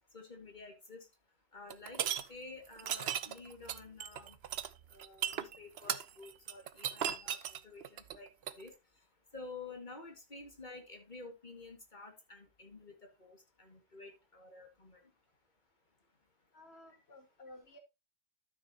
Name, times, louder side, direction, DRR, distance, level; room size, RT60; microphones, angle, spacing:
voice 1, 0.1-1.1 1.5-2.0 2.3-4.4 4.9-8.3 8.6-8.7 9.3-15.0, left 3 dB, 45° left, 4 dB, 2.4 m, -51 dB
sound 1, 1.7-2.2 2.8-8.6, right 9 dB, 75° right, 0.9 m, -36 dB
voice 2, 16.5-17.8, left 1 dB, 75° left, 5 dB, 2.2 m, -54 dB
12.5 x 6.7 x 2.9 m, 0.23 s
omnidirectional pair, 1.1 m